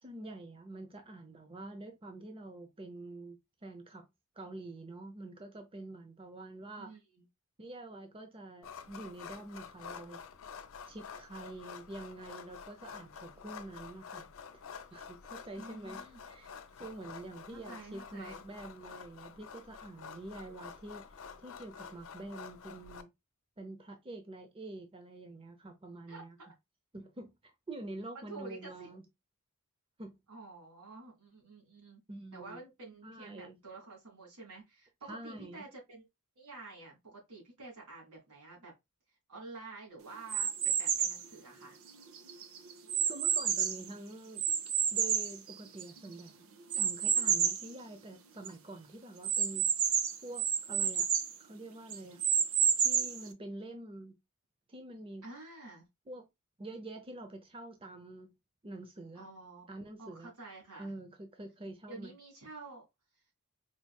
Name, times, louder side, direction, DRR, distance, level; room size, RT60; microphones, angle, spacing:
voice 1, 0.0-3.4 3.6-4.1 4.4-7.0 7.6-10.2 10.8-14.6 14.9-23.1 23.6-26.4 26.9-29.0 30.0-30.2 32.1-32.6 33.0-33.6 35.1-35.6 43.0-44.4 44.9-46.5 46.7-49.7 50.2-51.1 51.4-52.3 52.8-54.1 54.7-55.2 56.1-56.3 56.6-58.4 58.6-59.3 59.7-60.3 60.8-62.1, right 2 dB, 25° right, 0.6 m, -46 dB
voice 2, 6.8-7.3 15.5-16.2 17.5-18.4 26.1-26.5 28.1-28.9 30.3-32.0 32.3-36.1 36.4-38.7 39.3-41.8 55.2-55.9 59.1-59.6 59.9-60.9 61.9-62.9, right 3 dB, 85° right, 2.4 m, -49 dB
sound 1, 8.6-23.0, left 6 dB, 65° left, 0.5 m, -49 dB
sound 2, 40.3-41.2 41.9-43.9 44.4-46.0 46.7-47.7 48.1-48.2 48.4-48.5 49.2-51.3 51.9-53.2, right 7 dB, 65° right, 0.6 m, -30 dB
4.4 x 3.0 x 2.2 m
head